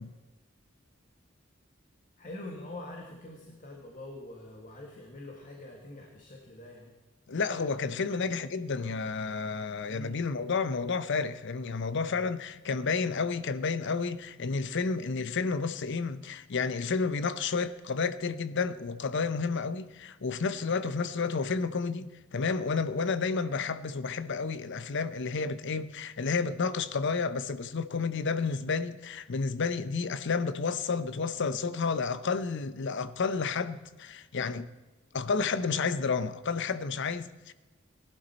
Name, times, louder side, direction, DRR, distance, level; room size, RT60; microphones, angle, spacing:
voice 1, 2.2-6.9 9.9-10.3, left 2 dB, 40° left, 1.8 m, -44 dB
voice 2, 7.3-34.7 35.1-37.5, left 4 dB, 60° left, 0.7 m, -31 dB
18.5 x 12.0 x 4.3 m
head